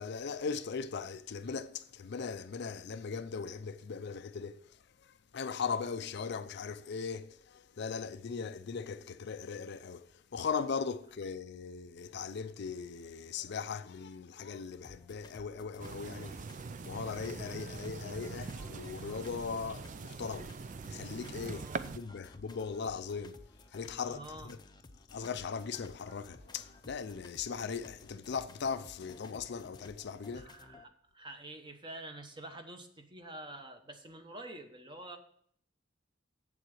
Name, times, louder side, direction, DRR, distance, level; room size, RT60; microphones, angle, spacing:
voice 1, 0.0-16.6 16.8-20.6 20.9-23.4 23.7-24.6 25.1-30.5, left 5 dB, 60° left, 0.5 m, -39 dB
sound 1, 14.8-30.8, left 2 dB, 20° left, 0.7 m, -56 dB
sound 2, 15.8-22.0, right 4 dB, 40° right, 0.4 m, -43 dB
voice 2, 21.5-21.9 24.1-24.5 30.3-35.2, right 1 dB, 25° right, 1.1 m, -47 dB
7.8 x 7.5 x 6.5 m
head